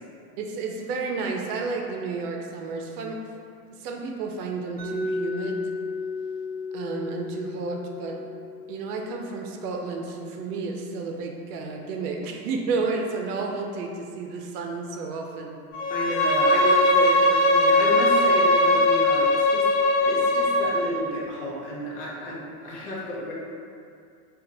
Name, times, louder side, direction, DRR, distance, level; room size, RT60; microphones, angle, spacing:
voice 1, 0.4-3.2 3.7-5.6 6.7-8.2 8.7-15.6, right 4 dB, 75° right, 2 dB, 0.6 m, -31 dB
Mallet percussion, 4.8-10.6, left 3 dB, 20° right, 0.4 m, -34 dB
Bowed string instrument, 15.7-20.9, left 1 dB, 60° left, 0.8 m, -20 dB
voice 2, 15.9-19.7 20.0-23.3, left 1 dB, 80° left, -4 dB, 1.0 m, -31 dB
4.0 x 2.4 x 2.6 m, 2.3 s
supercardioid pair, 150°, 47 cm